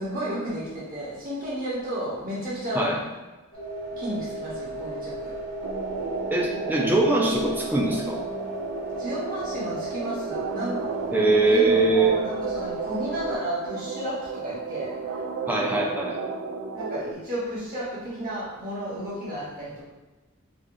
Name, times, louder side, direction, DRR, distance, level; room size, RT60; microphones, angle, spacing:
voice 1, 0.0-2.9 4.0-5.3 9.0-10.8 11.5-14.9 16.7-19.8, right 1 dB, 40° right, -8 dB, 1.2 m, -32 dB
sound 1, 3.5-13.4, right 1 dB, 85° left, 1.0 m, -35 dB
sound 2, 5.6-17.1, right 5 dB, 70° right, 0.3 m, -33 dB
voice 2, 6.3-8.2 11.1-12.2 15.5-16.2, right 2 dB, 10° right, -2 dB, 0.5 m, -22 dB
4.9 x 2.5 x 2.5 m, 1.1 s
head